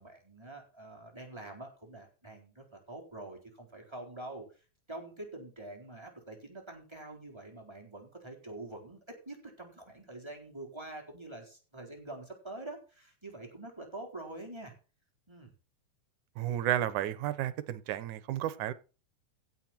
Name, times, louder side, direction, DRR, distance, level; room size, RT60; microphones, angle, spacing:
voice 1, 0.0-14.7 15.3-15.5, right 2 dB, 10° right, 3.9 m, -46 dB
voice 2, 16.4-18.7, right 12 dB, 75° right, 2.4 m, -32 dB
16.0 x 7.9 x 4.4 m
omnidirectional pair, 3.6 m